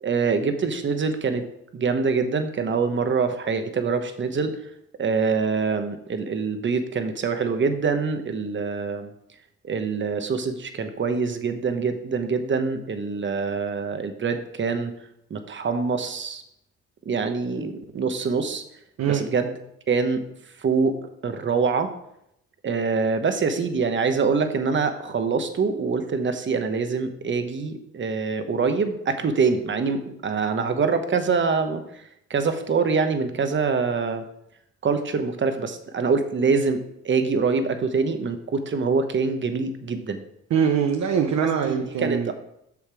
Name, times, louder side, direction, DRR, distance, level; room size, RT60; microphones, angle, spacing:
voice 1, 0.0-1.5 1.7-4.7 5.0-9.1 9.6-14.9 15.3-16.4 17.0-18.6 19.1-19.5 19.9-21.9 22.6-32.0 32.3-34.2 34.8-40.2 41.6-42.3, right 5 dB, 40° right, 8 dB, 1.1 m, -25 dB
voice 2, 40.5-42.3, right 7 dB, 60° right, 4 dB, 0.9 m, -23 dB
7.0 x 6.4 x 4.8 m, 0.78 s
cardioid pair, 90°, 30 cm